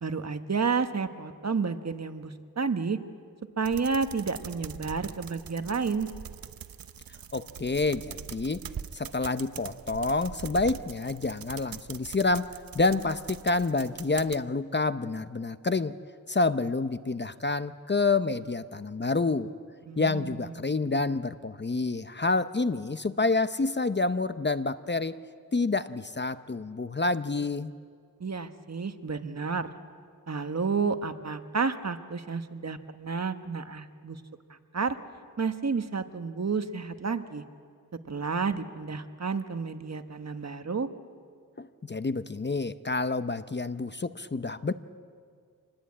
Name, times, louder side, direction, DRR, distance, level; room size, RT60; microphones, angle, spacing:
voice 1, 0.0-3.0 3.6-6.1 19.9-20.5 28.2-29.7 30.3-34.2 34.5-35.0 35.4-37.4 38.1-40.9, right 5 dB, 45° right, 9 dB, 1.2 m, -31 dB
sound 1, 3.6-14.4, right 8 dB, 75° right, 0.8 m, -43 dB
voice 2, 7.3-8.6 8.9-16.0 16.3-19.5 20.0-25.2 25.5-27.7 41.6-44.7, left 3 dB, 30° left, 12 dB, 0.7 m, -28 dB
26.5 x 20.5 x 8.6 m, 2.1 s
wide cardioid pair, 80°, 35 cm